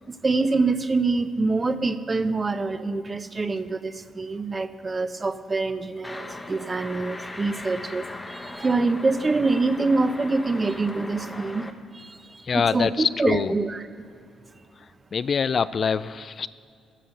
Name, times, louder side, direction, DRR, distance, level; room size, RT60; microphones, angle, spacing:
voice 1, 0.1-13.8, right 3 dB, 25° right, 11 dB, 0.7 m, -25 dB
sound 1, 6.0-11.7, left 2 dB, 15° left, 0.9 m, -38 dB
voice 2, 12.4-13.6 14.8-16.5, left 6 dB, 45° left, 16 dB, 0.3 m, -25 dB
10.0 x 10.0 x 7.7 m, 2.4 s
cardioid pair, 90°, 0 cm